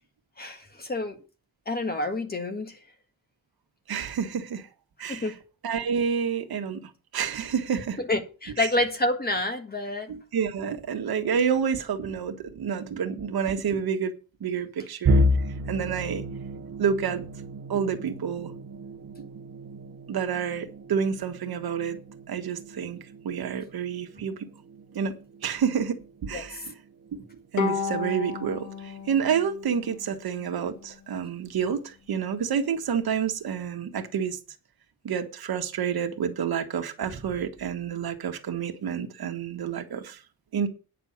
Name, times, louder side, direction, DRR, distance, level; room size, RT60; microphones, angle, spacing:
voice 1, 0.4-1.2 1.6-2.8 5.1-5.4 8.0-10.1 26.3-26.6, left 2 dB, 25° left, 1.6 m, -28 dB
voice 2, 3.9-4.7 5.0-5.3 5.6-6.8 7.1-8.0 8.6-8.7 10.1-14.1 14.4-15.2 15.7-16.2 16.8-17.3 17.7-18.5 20.1-22.0 22.3-23.0 23.2-24.5 24.9-25.1 25.4-26.6 27.1-27.2 27.5-34.4 35.0-40.2 40.5-40.7, right 7 dB, 75° right, 1.6 m, -29 dB
sound 1, 15.0-26.9 27.3-27.6 27.9-28.1 29.0-29.4, equal, 40° right, 1.2 m, -31 dB
Bowed string instrument, 27.6-30.9, left 5 dB, 50° left, 1.8 m, -33 dB
9.7 x 6.7 x 7.2 m
wide cardioid pair, 165°, 37 cm